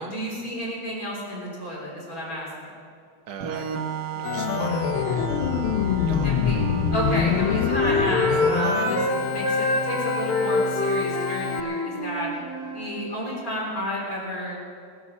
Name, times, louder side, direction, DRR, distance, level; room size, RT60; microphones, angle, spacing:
voice 1, 0.0-2.7 6.2-6.6 6.9-9.0 9.3-12.3 12.7-14.6, equal, 40° left, -4 dB, 4.3 m, -31 dB
voice 2, 3.3-3.7 4.2-5.3 6.1-6.6, right 5 dB, 75° right, 4 dB, 2.0 m, -38 dB
Organ, 3.4-10.9, right 9 dB, 60° right, 1.3 m, -36 dB
Organ 2, 4.2-11.6, left 9 dB, 75° left, 1.4 m, -26 dB
Wind instrument woodwind instrument, 6.5-9.1 9.4-13.1, left 1 dB, 25° right, 1.3 m, -26 dB
19.5 x 8.4 x 7.2 m, 2.4 s
omnidirectional pair, 2.3 m